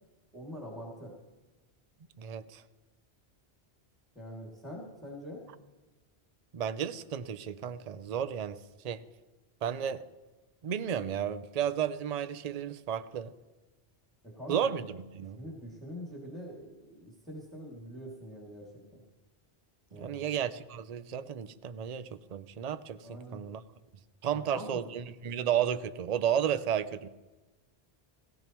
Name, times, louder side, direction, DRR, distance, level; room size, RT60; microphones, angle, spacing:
voice 1, 0.3-1.1 4.1-5.4 14.2-14.9 15.4-19.0 19.9-20.2 23.0-23.4 24.3-24.9, equal, ahead, 2.4 m, -44 dB
voice 2, 2.2-2.6 6.5-8.6 8.8-9.0 9.6-10.0 10.6-13.3 14.5-15.4 19.9-23.0 23.3-23.6 24.2-27.1, right 9 dB, 45° right, 0.6 m, -33 dB
18.0 x 17.5 x 3.0 m
omnidirectional pair, 1.1 m